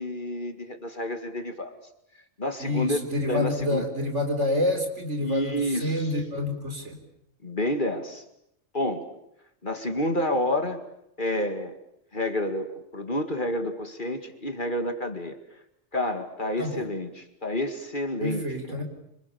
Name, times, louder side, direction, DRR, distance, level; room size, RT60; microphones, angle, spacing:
voice 1, 0.0-1.8 2.4-3.0 3.3-3.8 5.2-6.4 7.4-8.2 8.7-9.1 9.6-10.8 11.2-11.7 12.1-15.4 15.9-18.8, left 1 dB, 40° left, 7 dB, 2.2 m, -29 dB
voice 2, 2.6-7.0 16.6-16.9 18.2-18.8, left 1 dB, 60° right, 6 dB, 4.4 m, -28 dB
27.0 x 26.5 x 6.9 m, 0.77 s
omnidirectional pair, 1.3 m